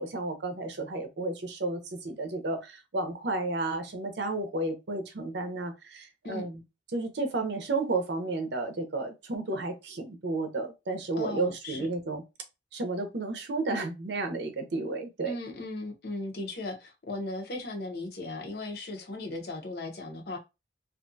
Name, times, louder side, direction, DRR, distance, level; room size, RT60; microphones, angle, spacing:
voice 1, 0.0-6.6 6.9-12.2 12.7-15.4, right 2 dB, 70° right, 0.6 m, -32 dB
voice 2, 11.2-11.9 15.2-20.4, left 2 dB, 55° left, 0.7 m, -37 dB
2.5 x 2.2 x 2.6 m
head